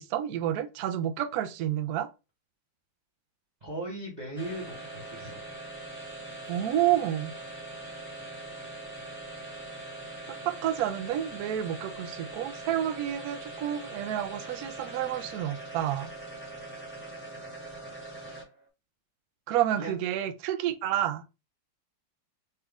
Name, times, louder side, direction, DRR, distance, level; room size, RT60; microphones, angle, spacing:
voice 1, 0.0-2.1 6.5-7.3 10.5-16.1 19.5-21.3, right 11 dB, 70° right, 0.9 m, -29 dB
voice 2, 3.6-5.4 19.7-20.0, right 1 dB, 30° right, 0.9 m, -38 dB
sound 1, 4.4-18.7, right 2 dB, 5° left, 1.2 m, -42 dB
4.3 x 2.4 x 3.4 m
omnidirectional pair, 2.1 m